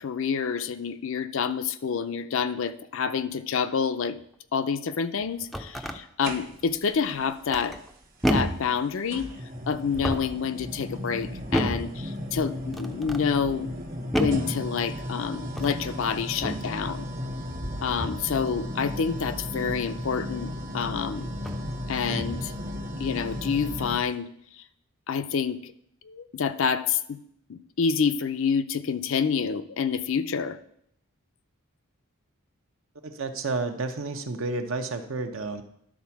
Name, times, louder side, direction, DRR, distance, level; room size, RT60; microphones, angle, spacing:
voice 1, 0.0-4.2 4.5-7.8 8.3-9.3 9.7-13.7 14.1-17.1 17.8-21.3 21.9-22.5 23.0-24.3 24.6-24.7 25.1-25.7 26.0-27.2 27.5-30.6, left 6 dB, 60° left, 12 dB, 0.5 m, -28 dB
sound 1, 5.2-6.0 7.5-7.9 8.2-8.7 9.8-10.4 11.5-11.9 12.7-13.3 14.1-14.5 15.5-15.9 16.4-16.7 18.0-18.3 20.4-20.5 21.4-21.7 22.1-22.5, equal, ahead, 0.4 m, -30 dB
sound 2, 6.2-6.9 8.2-8.3 9.1-24.1, left 1 dB, 40° right, 1.1 m, -35 dB
voice 2, 33.0-35.6, right 3 dB, 65° right, 7 dB, 0.8 m, -31 dB
11.5 x 4.2 x 5.8 m, 0.72 s
head